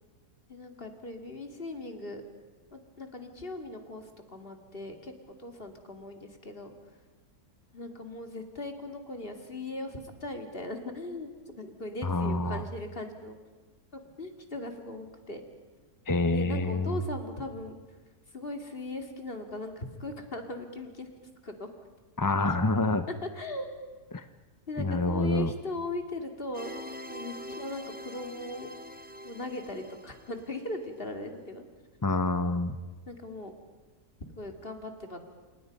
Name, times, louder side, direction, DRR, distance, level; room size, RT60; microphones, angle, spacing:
voice 1, 0.5-2.2 2.7-6.7 7.7-13.4 13.9-15.4 16.3-17.8 18.3-21.1 21.4-21.7 23.2-23.7 24.7-26.7 27.1-28.7 29.2-31.6 33.1-33.5 34.3-35.3, left 2 dB, 35° left, 4 dB, 2.7 m, -39 dB
voice 2, 12.0-12.6 16.1-17.0 22.2-23.1 24.1-24.3 24.8-25.5 32.0-32.8, left 2 dB, 20° left, 10 dB, 0.6 m, -27 dB
sound 1, 26.5-30.7, equal, 5° right, 0.9 m, -44 dB
29.0 x 27.5 x 5.4 m, 1.3 s
omnidirectional pair, 1.6 m